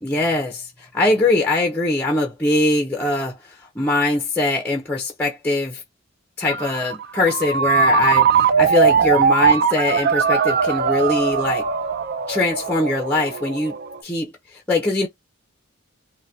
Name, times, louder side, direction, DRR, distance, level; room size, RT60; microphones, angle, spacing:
voice 1, 0.0-5.8 6.4-11.7 12.3-13.8 14.0-15.1, left 2 dB, 10° left, 0.5 m, -22 dB
Ringtone, 6.5-14.0, right 6 dB, 45° right, 0.4 m, -20 dB
3.6 x 2.1 x 2.7 m
head